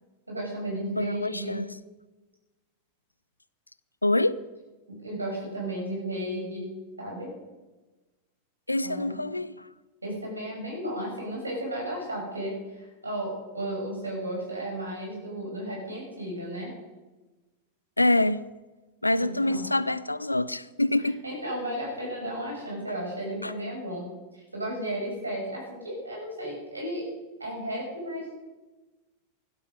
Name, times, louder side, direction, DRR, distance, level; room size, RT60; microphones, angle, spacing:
voice 1, 0.3-1.6 4.9-6.7 7.0-7.3 8.8-9.2 10.0-16.7 19.2-19.6 21.2-24.1 24.3-27.1 27.4-28.2, right 1 dB, 80° right, 6.3 m, -34 dB
voice 2, 1.0-1.7 4.0-4.4 8.7-9.7 18.0-18.4 19.0-21.2 23.4-23.5, left 2 dB, 85° left, 0.5 m, -25 dB
16.5 x 12.0 x 5.4 m
figure-of-eight pair, 90°, 0 cm